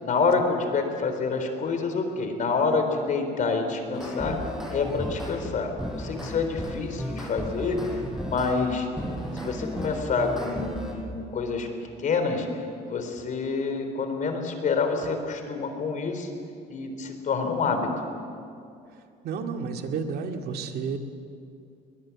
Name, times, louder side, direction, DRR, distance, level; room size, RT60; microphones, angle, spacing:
voice 1, 0.0-4.4 4.7-7.8 8.2-8.9 9.3-11.7 12.0-12.5 12.9-16.3 16.7-17.9, left 4 dB, 50° left, 6 dB, 4.1 m, -27 dB
sound 1, 3.9-5.4 5.8-10.9, equal, 5° right, 5.6 m, -34 dB
voice 2, 19.2-21.0, right 5 dB, 70° right, 4 dB, 2.2 m, -31 dB
22.5 x 21.0 x 8.5 m, 2.4 s
cardioid pair, 110°, 17 cm